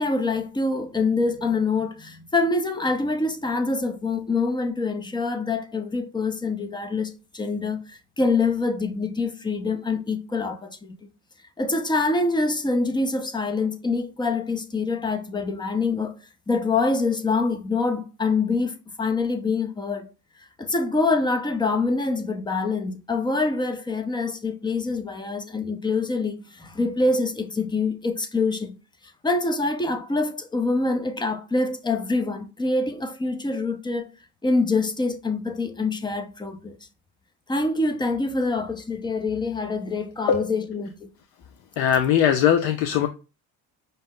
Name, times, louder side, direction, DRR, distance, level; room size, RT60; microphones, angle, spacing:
voice 1, 0.0-10.9 11.6-16.1 16.5-20.1 20.6-28.7 29.2-34.1 34.4-36.8 37.5-41.1, left 3 dB, 10° left, 0.5 m, -25 dB
voice 2, 41.8-43.1, left 9 dB, 85° left, 0.5 m, -20 dB
5.4 x 2.0 x 3.6 m
cardioid pair, 100°, 38 cm